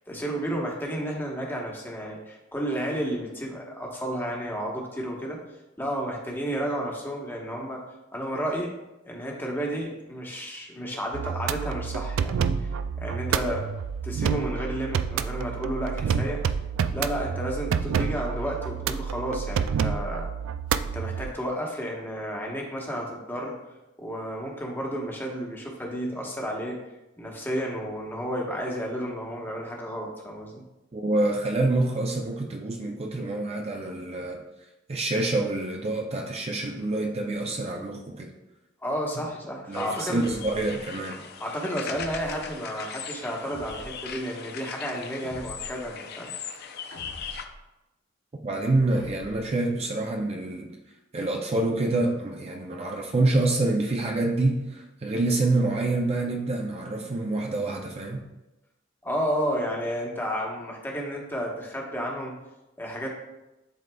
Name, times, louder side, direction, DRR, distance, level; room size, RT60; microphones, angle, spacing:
voice 1, 0.1-5.4 5.8-7.8 8.1-8.7 9.0-12.7 13.0-13.7 14.0-16.4 16.9-20.3 20.9-23.5 24.0-26.8 27.2-30.6 38.8-40.3 41.4-46.3 59.0-62.3 62.8-63.1, equal, 10° left, -1 dB, 1.0 m, -32 dB
sound 1, 11.1-21.3, right 7 dB, 90° right, 0.3 m, -28 dB
voice 2, 30.9-34.4 34.9-38.3 39.7-41.2 48.4-50.7 51.1-58.2, right 2 dB, 30° right, 1 dB, 0.5 m, -27 dB
sound 2, 39.7-47.5, left 7 dB, 55° left, 0.5 m, -39 dB
sound 3, 40.2-40.8 41.9-42.5 43.5-44.1 45.2-45.9 46.9-47.6 48.9-49.5, left 1 dB, 90° left, 1.0 m, -44 dB
10.5 x 3.9 x 2.2 m, 0.99 s
head